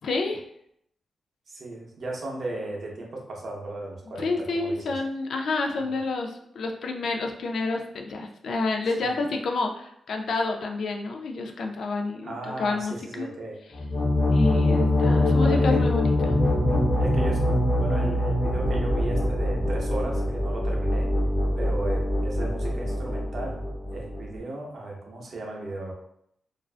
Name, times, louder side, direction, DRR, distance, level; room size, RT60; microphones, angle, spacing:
voice 1, 0.0-0.4 4.2-13.3 14.3-16.4, left 3 dB, 70° left, 3 dB, 0.3 m, -29 dB
voice 2, 1.5-4.9 5.8-5.9 9.0-9.1 12.2-13.6 15.4-15.8 17.0-21.1 21.6-23.6 23.9-25.9, right 2 dB, 55° right, -1 dB, 0.6 m, -36 dB
sound 1, 13.7-24.4, left 1 dB, 40° left, 0.7 m, -24 dB
2.4 x 2.1 x 2.4 m, 0.73 s
cardioid pair, 110°, 0 cm